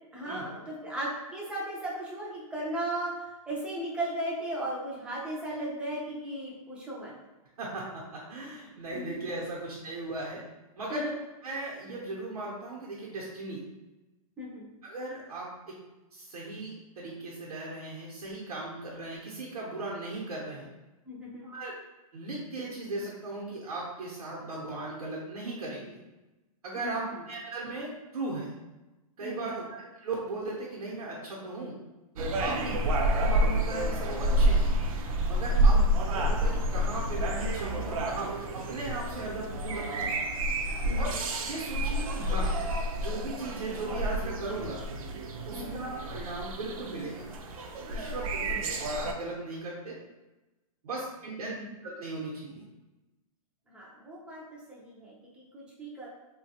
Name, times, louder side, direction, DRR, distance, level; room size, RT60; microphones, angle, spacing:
voice 1, 0.1-7.1 8.9-9.2 10.9-11.2 14.4-14.7 21.0-21.5 26.8-27.2 29.2-29.6 32.5-32.8 35.5-35.9 40.8-41.1 45.5-45.9 48.4-48.6 51.4-51.7 53.7-54.4 54.7-56.1, right 1 dB, 5° right, -5 dB, 0.4 m, -36 dB
voice 2, 7.6-10.4 10.8-11.0 11.4-13.6 14.8-15.8 16.1-20.7 21.4-21.7 22.1-26.0 26.6-28.5 29.2-31.8 32.4-32.7 33.1-34.7 35.3-35.8 36.1-40.1 41.0-41.1 41.4-42.5 43.0-44.8 45.4-47.3 47.9-48.6 48.9-50.0 50.8-51.5 51.8-52.6, right 2 dB, 90° right, -4 dB, 0.8 m, -37 dB
sound 1, 32.2-49.1, right 1 dB, 65° right, 0.5 m, -29 dB
3.0 x 2.3 x 2.8 m, 1.1 s
hypercardioid pair, 155°, 19 cm